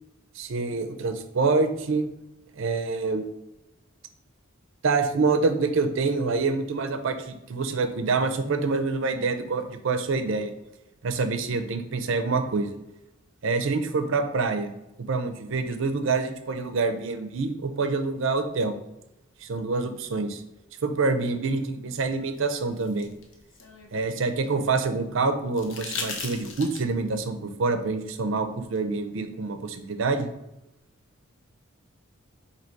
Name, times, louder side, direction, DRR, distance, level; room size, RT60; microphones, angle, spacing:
voice 1, 0.3-2.1 2.6-3.3 4.8-10.5 11.0-12.7 13.4-14.7 15.1-18.7 19.4-20.4 20.8-23.1 23.9-30.3, right 4 dB, 65° right, 7 dB, 0.5 m, -26 dB
sound 1, 22.4-24.6 25.5-27.1 28.8-28.9, left 4 dB, 60° left, 0.7 m, -38 dB
4.1 x 2.8 x 4.4 m, 0.93 s
head